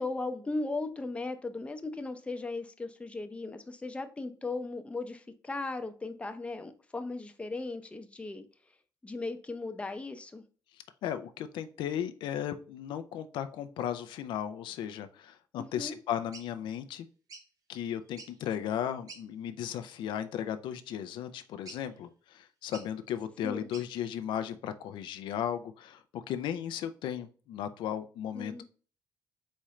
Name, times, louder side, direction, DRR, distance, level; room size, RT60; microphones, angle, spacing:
voice 1, 0.0-8.4 9.0-10.4 15.6-16.0 23.4-23.7 28.3-28.6, left 3 dB, 15° left, 7 dB, 0.6 m, -37 dB
voice 2, 11.0-17.1 17.7-28.6, left 10 dB, 90° left, 9 dB, 0.4 m, -36 dB
sound 1, 16.3-16.5 17.3-17.5 18.1-18.5 19.1-19.3 19.8-20.0 21.7-22.0 22.7-22.9 23.7-23.9, right 3 dB, 50° right, 0.9 m, -49 dB
4.3 x 3.7 x 3.1 m, 0.40 s
cardioid pair, 115°, 8 cm